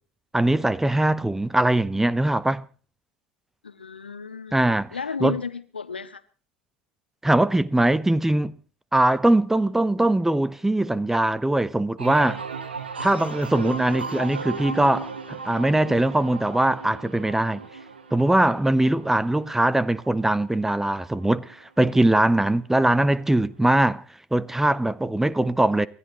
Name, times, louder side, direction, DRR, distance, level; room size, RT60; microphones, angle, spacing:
voice 1, 0.3-2.6 4.5-4.9 5.2-5.3 7.2-8.5 8.9-12.4 13.0-17.6 18.1-24.0 24.3-25.9, right 1 dB, 5° right, 0.6 m, -21 dB
voice 2, 3.6-6.2, left 5 dB, 80° left, 0.9 m, -34 dB
sound 1, 12.0-21.5 21.9-22.5, right 4 dB, 80° right, 1.5 m, -36 dB
29.5 x 12.5 x 3.1 m
figure-of-eight pair, 75°, 5 cm